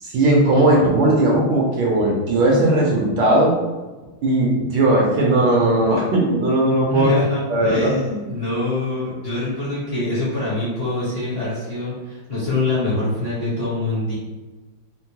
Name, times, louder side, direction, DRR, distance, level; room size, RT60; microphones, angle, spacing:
voice 1, 0.0-3.5 4.2-7.1 7.5-7.9, right 1 dB, 70° right, -2 dB, 1.3 m, -17 dB
voice 2, 6.9-14.1, left 2 dB, 35° left, -9 dB, 1.1 m, -24 dB
4.4 x 2.1 x 2.8 m, 1.2 s
omnidirectional pair, 2.3 m